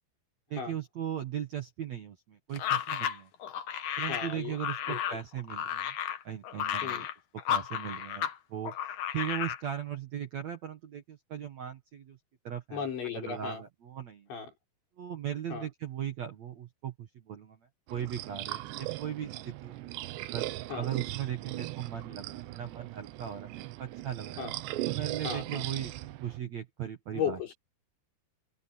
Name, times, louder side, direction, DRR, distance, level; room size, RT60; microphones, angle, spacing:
voice 1, 0.5-3.3 4.0-6.0 6.2-7.1 7.3-8.8 9.1-12.2 12.4-12.9 13.1-14.3 15.0-17.6 17.9-19.8 20.3-24.4 24.9-25.9 26.2-27.4, right 10 dB, 60° right, 1.9 m, -38 dB
sound 1, 2.5-8.4 8.6-9.6, left 10 dB, 60° left, 2.2 m, -33 dB
voice 2, 4.1-4.6 4.9-5.2 6.8-7.1 12.7-13.6 14.3-14.5 15.5-15.7 20.7-20.9 24.4-24.5 25.2-25.6 27.1-27.5, left 7 dB, 80° left, 8.7 m, -35 dB
sound 2, 17.9-26.4, right 16 dB, 75° right, 3.1 m, -39 dB
omnidirectional pair, 5.2 m